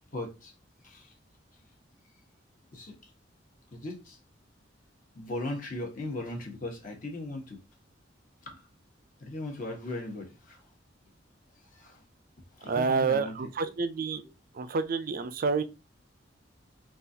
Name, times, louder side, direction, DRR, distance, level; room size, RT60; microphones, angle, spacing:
voice 1, 0.1-0.5 0.8-1.1 2.7-3.1 3.7-4.2 5.1-7.6 8.4-8.7 9.2-10.7 11.5-12.0 12.5-13.3 13.6-13.7, left 2 dB, 45° left, 1.0 m, -38 dB
voice 2, 12.7-14.2 14.5-15.6, right 5 dB, 50° right, 0.4 m, -28 dB
3.9 x 2.4 x 2.7 m
head